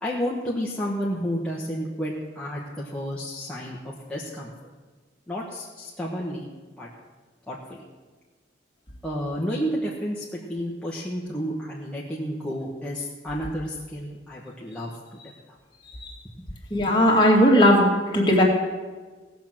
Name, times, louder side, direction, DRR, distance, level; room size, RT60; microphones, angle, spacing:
voice 1, 0.0-4.5 5.3-6.5 6.8-6.9 7.5-7.6 9.0-14.9, equal, 5° left, -6 dB, 1.3 m, -31 dB
voice 2, 16.7-18.4, equal, 25° left, -1 dB, 2.2 m, -17 dB
17.5 x 6.0 x 7.7 m, 1.3 s
head